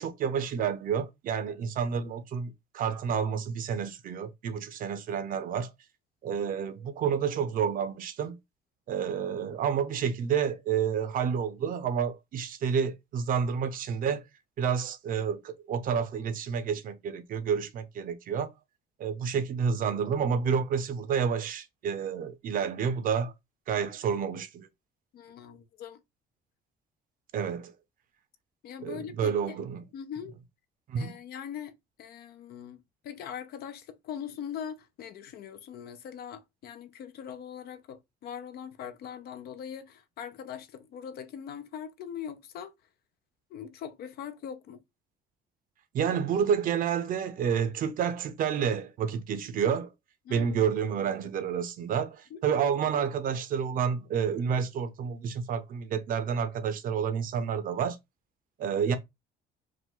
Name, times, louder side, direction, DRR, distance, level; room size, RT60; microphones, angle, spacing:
voice 1, 0.0-5.7 6.2-8.4 8.9-14.2 14.6-18.5 19.0-23.3 23.7-24.7 27.3-27.7 28.8-29.8 30.9-31.1 45.9-49.9 50.3-58.0 58.6-59.0, right 7 dB, 50° right, 0.7 m, -29 dB
voice 2, 25.1-26.0 28.6-29.6 29.9-30.3 31.0-42.7 43.5-44.8 50.2-50.6 51.2-51.3 52.3-52.4, left 8 dB, 60° left, 0.7 m, -41 dB
4.8 x 2.5 x 3.8 m
cardioid pair, 155°, 18 cm